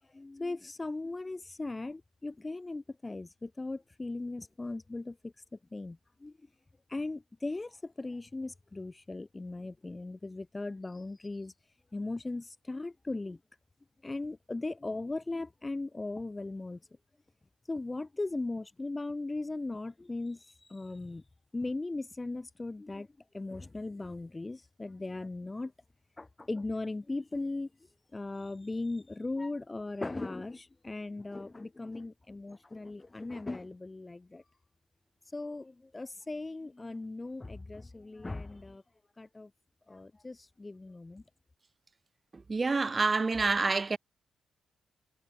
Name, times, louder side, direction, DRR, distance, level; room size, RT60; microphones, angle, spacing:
voice 1, 0.1-5.3 5.7-6.4 6.9-11.5 11.9-13.4 14.0-16.8 17.7-21.2 21.5-23.1 23.3-25.7 26.2-27.7 28.1-34.4 35.3-38.8 39.2-39.5 39.9-41.2, left 2 dB, 20° left, 3.8 m, -38 dB
voice 2, 42.3-44.0, right 3 dB, 35° right, 1.4 m, -28 dB
cardioid pair, 75°, 0 cm